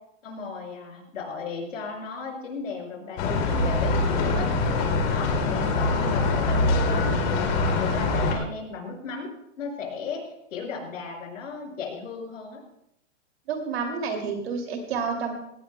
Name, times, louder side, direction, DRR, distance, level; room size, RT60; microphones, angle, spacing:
voice 1, 0.2-4.5 5.1-9.3 9.6-10.2 10.5-12.6, left 4 dB, 85° left, 0 dB, 5.8 m, -35 dB
sound 1, 3.2-8.3, left 3 dB, 35° left, 2.4 m, -24 dB
voice 2, 13.5-15.3, right 5 dB, 55° right, 3 dB, 2.5 m, -29 dB
18.5 x 17.5 x 2.2 m, 0.81 s
hypercardioid pair, 170°, 38 cm